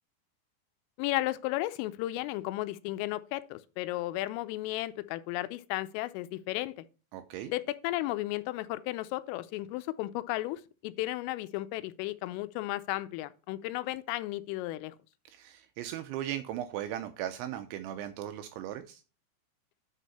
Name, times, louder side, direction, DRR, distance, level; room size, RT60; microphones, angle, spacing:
voice 1, 1.0-6.7 7.5-15.0, left 17 dB, 85° left, 3.2 m, -34 dB
voice 2, 7.1-7.5 15.3-19.0, right 11 dB, 80° right, 2.7 m, -37 dB
10.0 x 5.1 x 4.1 m
omnidirectional pair, 5.8 m